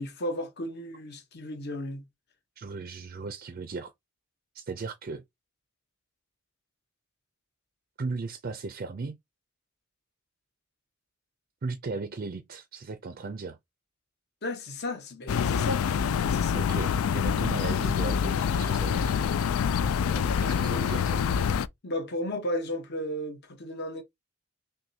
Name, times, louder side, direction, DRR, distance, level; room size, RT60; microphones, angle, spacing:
voice 1, 0.0-2.1 14.4-15.8 16.3-16.6 20.6-20.8 21.8-24.0, left 1 dB, 55° left, 0.9 m, -34 dB
voice 2, 2.6-3.9 4.5-5.2 8.0-9.2 11.6-13.6 16.5-19.2 20.1-21.5, right 4 dB, 45° right, 0.4 m, -37 dB
sound 1, 15.3-21.7, left 7 dB, 90° left, 0.3 m, -26 dB
6.1 x 2.2 x 2.7 m
head